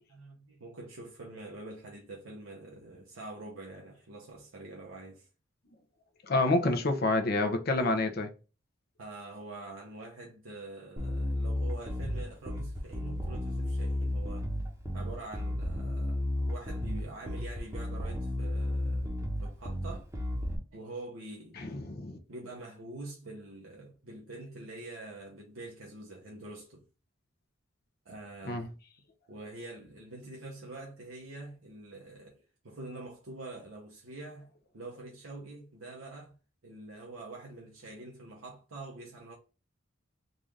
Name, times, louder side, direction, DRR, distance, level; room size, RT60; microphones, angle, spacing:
voice 1, 0.1-5.3 9.0-14.5 14.9-19.1 19.4-20.1 20.7-21.8 22.3-26.8 28.0-28.7 29.3-34.5 34.7-36.4 36.6-39.3, right 2 dB, 85° right, 0.9 m, -45 dB
voice 2, 6.3-8.3 21.6-22.2 28.5-28.7, left 2 dB, 50° left, 0.7 m, -28 dB
Bass guitar, 11.0-20.6, left 1 dB, 15° right, 0.9 m, -33 dB
3.9 x 2.5 x 3.2 m
head